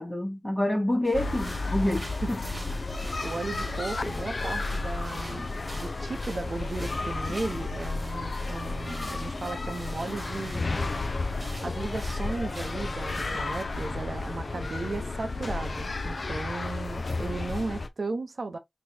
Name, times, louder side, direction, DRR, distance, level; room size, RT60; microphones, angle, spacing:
voice 1, 0.0-2.4, left 1 dB, 20° left, 1.1 m, -27 dB
sound 1, 1.0-13.6, right 1 dB, 20° right, 1.5 m, -47 dB
sound 2, 1.1-17.9, left 3 dB, 55° left, 0.6 m, -32 dB
voice 2, 3.2-10.7 11.6-18.6, right 3 dB, 60° right, 0.7 m, -35 dB
4.1 x 2.9 x 2.8 m
wide cardioid pair, 80°, 0 cm